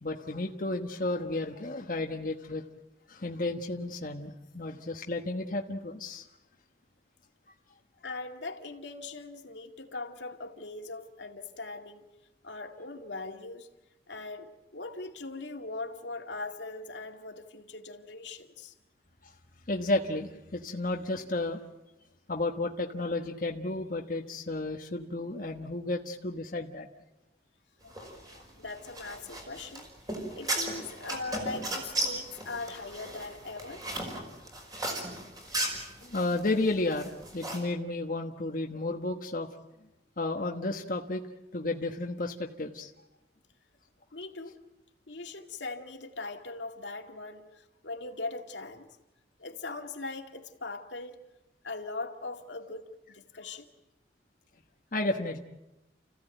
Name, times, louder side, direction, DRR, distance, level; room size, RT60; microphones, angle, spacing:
voice 1, 0.0-2.6 3.1-6.2 19.2-19.3 19.7-21.6 22.3-26.9 27.8-28.2 30.3-30.4 36.0-39.5 40.2-41.2 41.5-42.9 54.9-55.4, left 2 dB, 50° left, 2 dB, 1.3 m, -32 dB
voice 2, 8.0-12.0 12.4-13.7 14.1-18.7 28.6-29.9 30.3-33.9 44.1-44.6 45.1-49.0 49.4-51.2 51.6-53.7, left 3 dB, 85° left, 3 dB, 2.3 m, -40 dB
sound 1, 27.9-37.6, right 1 dB, 20° right, 5.4 m, -36 dB
29.5 x 16.0 x 9.1 m, 1.0 s
head